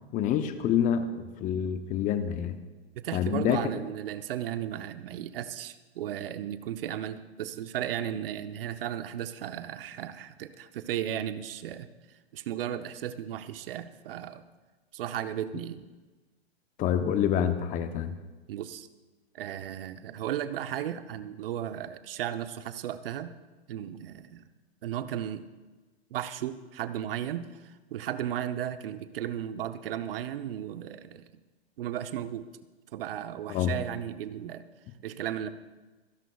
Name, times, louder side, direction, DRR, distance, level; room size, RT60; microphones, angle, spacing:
voice 1, 0.1-2.6 3.1-3.6 16.8-18.1 33.5-33.7, left 9 dB, 25° left, 10 dB, 0.8 m, -27 dB
voice 2, 2.9-11.9 12.3-14.4 14.9-15.9 18.5-18.9 19.3-23.3 23.7-24.5 24.8-25.5 26.1-31.3 31.8-32.5 32.9-34.7 35.0-35.5, right 10 dB, 60° right, 11 dB, 0.8 m, -35 dB
26.5 x 11.0 x 2.3 m, 1.2 s
hypercardioid pair, 120°, 32 cm